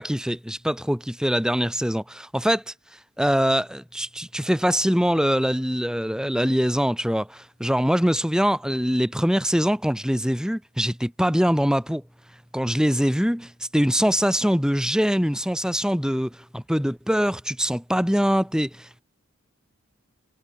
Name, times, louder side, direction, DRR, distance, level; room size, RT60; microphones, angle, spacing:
voice 1, 0.0-2.7 3.2-12.0 12.5-19.0, equal, 5° right, 3.6 m, -23 dB
head